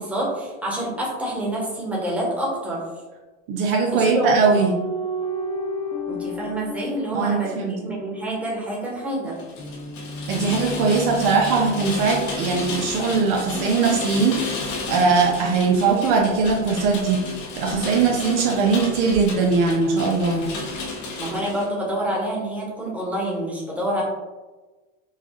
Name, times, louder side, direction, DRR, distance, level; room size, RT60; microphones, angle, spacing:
voice 1, 0.0-2.9 3.9-4.4 6.1-9.4 21.2-24.0, right 1 dB, 5° right, -5 dB, 1.2 m, -27 dB
voice 2, 3.5-4.8 7.1-7.7 10.3-17.3 17.6-20.4, right 4 dB, 55° right, 0 dB, 0.7 m, -20 dB
sound 1, 4.5-8.1 9.6-13.3 14.1-15.4, equal, 15° left, 0.9 m, -33 dB
Rain, 9.3-21.7, left 3 dB, 45° left, 0.9 m, -32 dB
4.6 x 2.3 x 3.0 m, 1.2 s
supercardioid pair, 110°, 39 cm